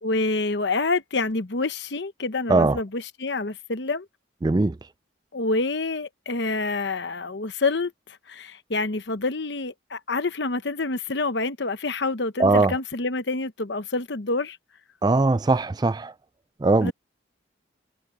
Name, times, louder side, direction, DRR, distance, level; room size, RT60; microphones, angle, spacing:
voice 1, 0.0-4.1 5.3-7.9 8.3-14.6 16.8-16.9, left 3 dB, 60° left, 1.0 m, -27 dB
voice 2, 2.5-2.8 4.4-4.8 12.4-12.7 15.0-16.1 16.6-16.9, right 3 dB, 20° right, 0.3 m, -20 dB
head